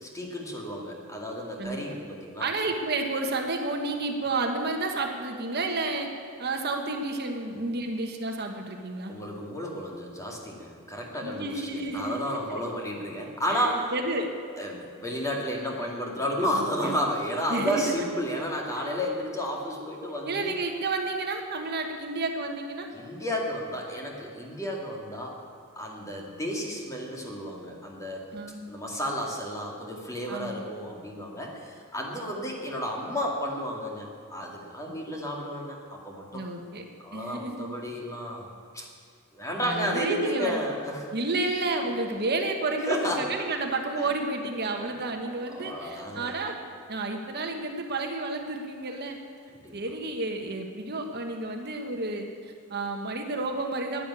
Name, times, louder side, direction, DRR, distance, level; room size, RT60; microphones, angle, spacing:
voice 1, 0.0-2.5 9.1-13.9 14.6-20.5 22.9-25.4 25.8-28.3 28.7-36.4 37.0-38.9 39.3-41.1 41.8-41.9 42.9-43.3 44.0-44.1 44.8-45.1 45.5-46.3 49.6-49.8, equal, 15° left, -1 dB, 2.3 m, -32 dB
voice 2, 2.4-6.1 6.4-9.1 11.2-12.6 13.5-14.3 16.5-16.9 17.5-17.9 18.7-18.9 20.3-22.9 28.3-28.6 30.3-30.6 36.3-36.8 37.1-37.8 39.6-40.6 41.1-46.6 46.9-49.2 49.7-54.0, right 2 dB, 50° right, 4 dB, 1.2 m, -31 dB
11.5 x 10.0 x 9.8 m, 2.3 s
head